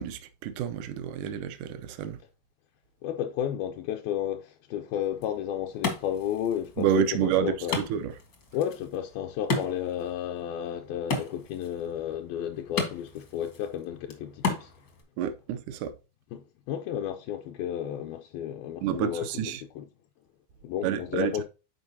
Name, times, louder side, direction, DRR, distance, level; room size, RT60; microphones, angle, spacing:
voice 1, 0.0-2.2 6.8-8.1 15.2-15.9 18.8-19.6 20.8-21.4, right 9 dB, 85° right, 1.8 m, -29 dB
voice 2, 3.0-7.8 8.5-14.7 16.3-19.3 19.8-19.9 20.6-21.4, left 10 dB, 80° left, 2.3 m, -32 dB
Wood, 5.0-15.0, left 4 dB, 60° left, 1.1 m, -36 dB
11.0 x 4.5 x 2.7 m
omnidirectional pair, 4.4 m